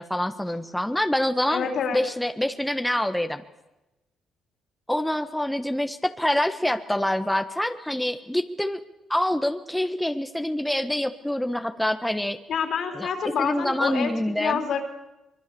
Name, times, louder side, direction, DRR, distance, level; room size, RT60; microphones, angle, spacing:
voice 1, 0.0-1.7 1.9-3.4 4.9-8.8 9.1-12.4 12.9-13.1 13.4-14.6, left 1 dB, 5° left, 7 dB, 1.4 m, -26 dB
voice 2, 1.5-2.0 12.5-14.1 14.4-14.8, left 6 dB, 65° left, 4 dB, 4.0 m, -27 dB
24.0 x 22.5 x 7.0 m, 1.0 s
cardioid pair, 90°, 0 cm